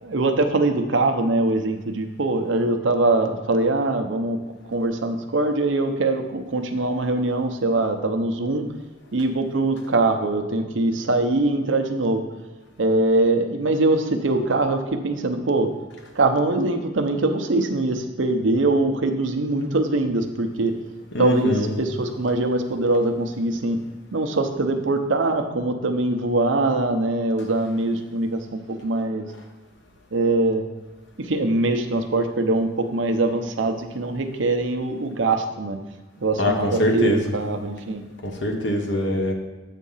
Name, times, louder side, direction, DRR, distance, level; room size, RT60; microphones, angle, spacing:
voice 1, 0.0-4.4 4.6-8.7 9.1-12.2 12.8-15.7 16.1-20.7 21.2-23.8 24.1-29.3 30.1-30.7 31.2-35.8 36.2-38.0, right 2 dB, 80° right, 6 dB, 0.7 m, -22 dB
voice 2, 21.1-21.7 36.4-37.2 38.2-39.3, left 1 dB, 70° left, 2 dB, 1.1 m, -23 dB
8.2 x 3.7 x 5.6 m, 1.2 s
head